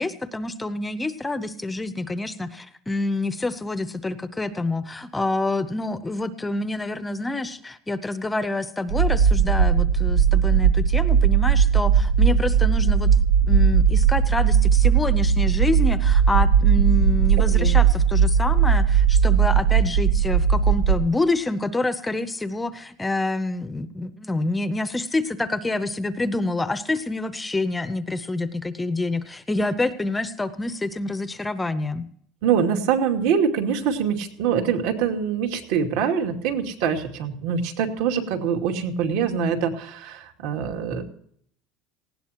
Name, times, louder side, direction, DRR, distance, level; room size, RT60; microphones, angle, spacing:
voice 1, 0.0-13.1 13.5-32.0, left 2 dB, 10° left, 12 dB, 0.7 m, -27 dB
sound 1, 8.9-21.0, right 7 dB, 85° right, 0.8 m, -18 dB
voice 2, 32.4-41.0, right 7 dB, 70° right, 3 dB, 2.6 m, -24 dB
19.0 x 16.5 x 2.9 m, 0.64 s
cardioid pair, 165°, 0 cm